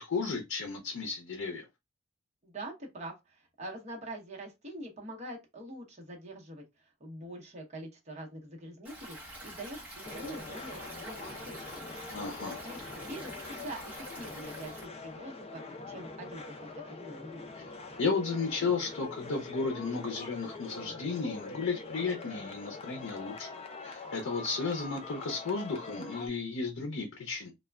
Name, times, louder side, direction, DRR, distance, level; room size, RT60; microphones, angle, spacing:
voice 1, 0.0-1.6 12.1-12.6 17.6-17.7 18.0-23.6 23.8-27.5, left 4 dB, 80° left, 0.5 m, -34 dB
voice 2, 2.4-11.9 12.6-17.4, right 1 dB, 35° right, 0.8 m, -44 dB
Stream, 8.8-14.8, right 1 dB, 5° right, 1.1 m, -46 dB
sound 1, 10.0-26.3, left 3 dB, 30° left, 0.4 m, -44 dB
3.2 x 2.1 x 2.2 m
head